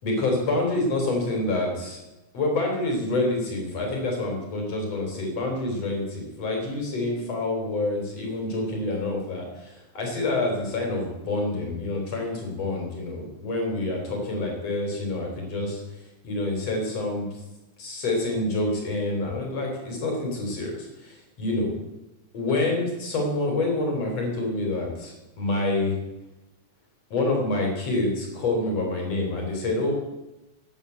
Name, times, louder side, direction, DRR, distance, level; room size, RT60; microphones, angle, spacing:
voice 1, 0.0-2.0 2.3-15.8 16.2-17.3 17.8-21.7 22.3-26.0 27.1-29.9, left 2 dB, 55° left, 1 dB, 4.6 m, -27 dB
13.0 x 9.7 x 8.0 m, 0.99 s
omnidirectional pair, 3.5 m